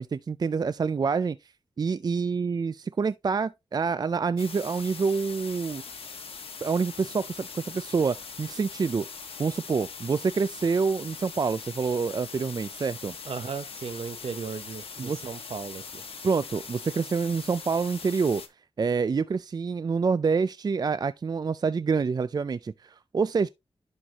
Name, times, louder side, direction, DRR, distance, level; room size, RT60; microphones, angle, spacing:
voice 1, 0.0-1.4 1.8-5.8 6.6-9.1 9.4-13.2 15.0-15.3 16.2-18.4 18.8-23.5, right 5 dB, 45° right, 0.4 m, -27 dB
sound 1, 4.4-18.5, left 5 dB, 75° left, 1.3 m, -41 dB
voice 2, 13.2-16.1, right 6 dB, 75° right, 0.9 m, -36 dB
11.0 x 4.1 x 2.9 m
cardioid pair, 70°, 10 cm